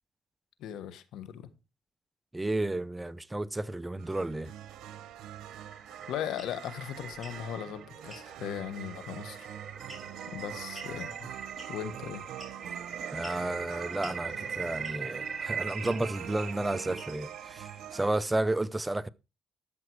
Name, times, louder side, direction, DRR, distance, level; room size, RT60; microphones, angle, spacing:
voice 1, 0.6-1.5 6.1-9.5 10.3-11.2 11.7-12.2, left 10 dB, 85° left, 1.4 m, -38 dB
voice 2, 2.3-4.5 13.1-19.1, right 2 dB, 15° right, 0.6 m, -32 dB
sound 1, 4.0-18.2, right 11 dB, 85° right, 1.0 m, -45 dB
sound 2, 4.8-18.2, right 6 dB, 40° right, 1.2 m, -42 dB
sound 3, 6.4-6.5 7.1-7.4 8.1-8.3 9.9-10.2 10.7-11.0 11.6-11.9 12.4-12.8 13.2-13.4 14.0-14.2 14.8-15.1 15.8-16.0 16.9-17.3, equal, 10° left, 5.8 m, -47 dB
12.5 x 7.7 x 4.7 m
cardioid pair, 90°, 0 cm